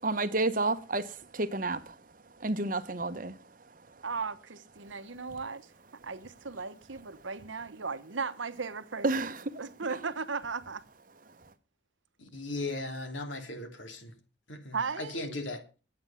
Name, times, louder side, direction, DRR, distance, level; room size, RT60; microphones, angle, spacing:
voice 1, 0.0-2.0 2.4-3.5 3.7-4.0 4.8-4.9 9.0-9.6 9.9-10.0, right 2 dB, 45° right, 1.0 m, -31 dB
voice 2, 4.0-5.7 6.0-9.1 9.6-10.8 14.7-15.2, right 4 dB, 85° right, 1.1 m, -36 dB
voice 3, 12.2-14.1 14.5-15.6, left 2 dB, 85° left, 2.9 m, -37 dB
11.0 x 8.7 x 7.0 m
head